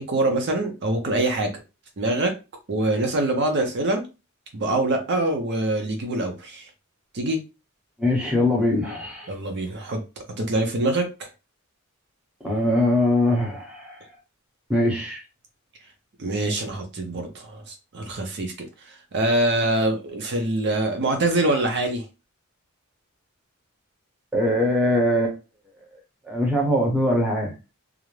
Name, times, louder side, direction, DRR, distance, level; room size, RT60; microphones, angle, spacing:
voice 1, 0.0-1.5 2.0-2.3 2.7-4.0 4.5-6.7 7.1-7.4 9.3-10.0 10.4-11.3 16.2-18.5 18.8-22.1, right 2 dB, 55° right, 4 dB, 0.5 m, -24 dB
voice 2, 8.0-9.3 12.4-14.0 14.7-15.2 24.3-25.4 26.2-27.5, left 1 dB, 5° right, -1 dB, 0.7 m, -22 dB
2.4 x 2.0 x 3.1 m, 0.28 s
head